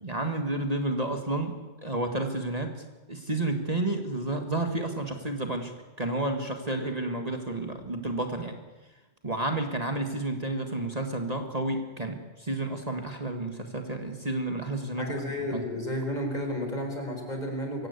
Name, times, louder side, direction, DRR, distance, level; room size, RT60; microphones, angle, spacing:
voice 1, 0.0-2.8 3.1-5.7 6.0-8.6 9.2-15.1 15.5-15.6, right 2 dB, 35° right, 5 dB, 1.9 m, -31 dB
voice 2, 15.0-17.9, left 1 dB, 40° left, 3 dB, 4.5 m, -32 dB
24.0 x 16.5 x 8.3 m, 1.2 s
omnidirectional pair, 1.2 m